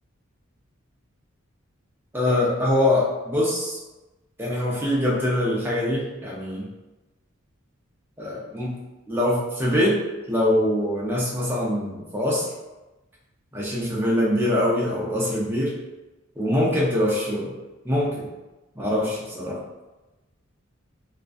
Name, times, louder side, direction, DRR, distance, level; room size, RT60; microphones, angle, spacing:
voice 1, 2.1-3.8 4.4-6.7 8.2-8.8 9.1-10.0 10.3-12.5 13.5-15.7 16.4-17.5 17.8-18.3 18.8-19.6, left 1 dB, 10° right, -6 dB, 0.5 m, -23 dB
2.4 x 2.2 x 2.4 m, 1.1 s
head